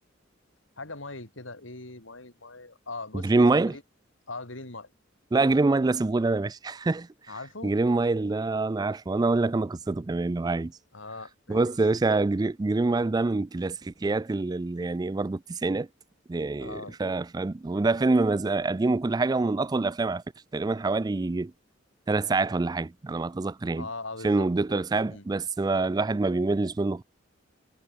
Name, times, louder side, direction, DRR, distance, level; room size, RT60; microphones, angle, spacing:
voice 1, 0.8-3.8 4.3-4.9 7.3-7.8 10.9-11.7 16.6-17.0 23.8-25.3, left 3 dB, 75° left, 4.2 m, -40 dB
voice 2, 3.1-3.8 5.3-7.1 7.6-10.7 11.5-15.9 16.3-20.2 20.5-21.5 22.1-23.9 24.2-27.0, right 3 dB, 20° right, 0.3 m, -25 dB
head